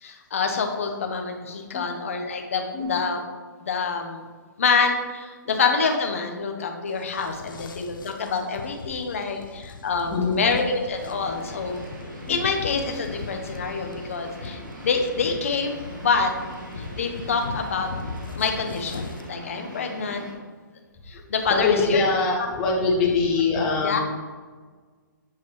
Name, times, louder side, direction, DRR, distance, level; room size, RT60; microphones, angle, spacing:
voice 1, 0.0-3.2 3.6-4.2 4.6-11.8 12.3-16.3 16.8-17.9 18.4-20.2 21.1-22.0 23.8-24.0, left 5 dB, 40° left, 4 dB, 0.7 m, -26 dB
sound 1, 6.9-19.3, left 4 dB, 75° left, 0.5 m, -39 dB
voice 2, 10.1-10.6 12.3-12.4 20.1-20.2 21.5-24.0, left 4 dB, 5° left, -3 dB, 0.3 m, -23 dB
sound 2, 10.9-20.3, right 1 dB, 60° right, 1.7 m, -41 dB
7.4 x 4.5 x 3.1 m, 1.5 s
hypercardioid pair, 180°, 11 cm